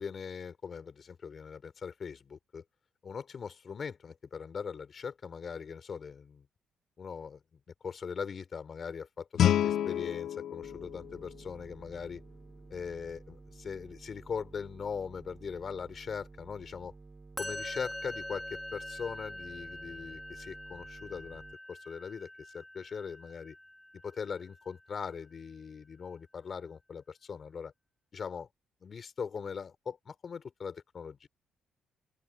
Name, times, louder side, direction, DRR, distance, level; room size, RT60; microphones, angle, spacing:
voice 1, 0.0-2.6 3.0-6.5 7.0-7.4 7.8-12.2 12.7-16.9 17.4-21.4 21.7-23.6 24.0-27.7 28.1-28.5 28.8-31.3, left 6 dB, 45° left, 4.0 m, -40 dB
Guitar, 9.3-12.1, left 10 dB, 70° left, 0.7 m, -30 dB
sound 1, 10.6-21.5, right 3 dB, 25° right, 2.8 m, -53 dB
Musical instrument, 17.4-24.6, left 1 dB, 10° left, 2.8 m, -44 dB
open air
cardioid pair, 90°, 0 cm